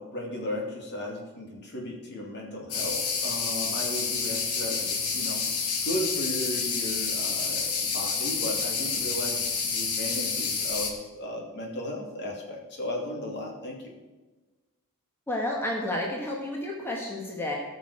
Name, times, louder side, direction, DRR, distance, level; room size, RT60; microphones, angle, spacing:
voice 1, 0.0-5.4 5.8-13.9, left 1 dB, 50° left, -1 dB, 2.7 m, -35 dB
sound 1, 2.7-10.9, left 5 dB, 80° left, 2.0 m, -29 dB
voice 2, 15.3-17.6, left 1 dB, 10° left, -1 dB, 1.4 m, -31 dB
18.0 x 6.3 x 5.0 m, 1.2 s
head